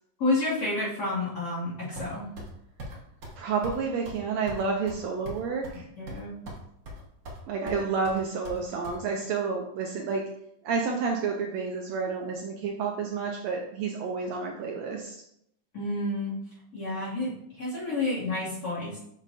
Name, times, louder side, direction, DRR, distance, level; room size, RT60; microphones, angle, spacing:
voice 1, 0.2-2.3 5.7-6.3 15.7-16.3 16.7-19.0, left 2 dB, 30° left, -8 dB, 2.6 m, -30 dB
sound 1, 2.0-2.5 2.8-3.0 3.2-3.4 3.6-3.8 4.1-4.2 4.5-5.8 6.1-6.6 6.9-7.4 7.7-9.0, right 1 dB, 45° right, 1.6 m, -40 dB
voice 2, 3.4-5.8 7.5-10.2 10.6-15.1, right 5 dB, 75° right, 1 dB, 1.7 m, -30 dB
7.2 x 6.1 x 2.7 m, 0.74 s
omnidirectional pair, 3.5 m